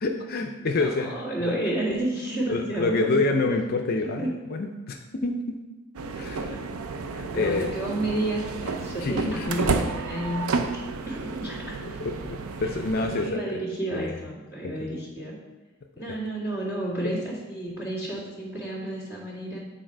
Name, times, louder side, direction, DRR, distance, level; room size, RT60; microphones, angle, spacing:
voice 1, 0.0-1.1 1.4-1.5 2.5-5.6 6.1-6.4 7.1-7.7 9.0-9.6 12.0-13.6 13.9-14.2 14.6-14.9, left 3 dB, 45° left, 3 dB, 0.4 m, -27 dB
voice 2, 0.7-3.2 4.2-4.3 6.1-6.6 7.3-12.0 13.1-15.4 16.0-19.6, right 1 dB, 10° right, -7 dB, 2.1 m, -31 dB
sound 1, 5.9-13.3, right 4 dB, 85° right, 0.5 m, -31 dB
8.7 x 4.1 x 4.5 m, 1.1 s
head